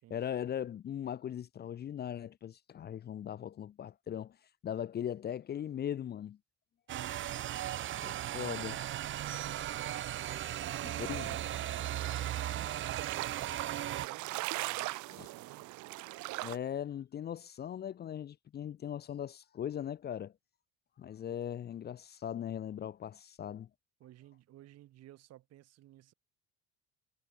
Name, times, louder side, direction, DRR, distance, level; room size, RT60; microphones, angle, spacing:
voice 1, 0.1-4.4 4.6-6.4 8.0-8.8 11.0-11.3 15.2-15.3 16.4-20.3 21.0-23.7, left 9 dB, 35° left, 0.9 m, -39 dB
sound 1, 6.9-14.1, right 12 dB, 40° right, 1.0 m, -37 dB
voice 2, 10.5-15.7 24.0-26.1, right 14 dB, 60° right, 6.2 m, -55 dB
sound 2, 10.6-16.6, right 21 dB, 80° right, 3.7 m, -41 dB
cardioid pair, 155°, 29 cm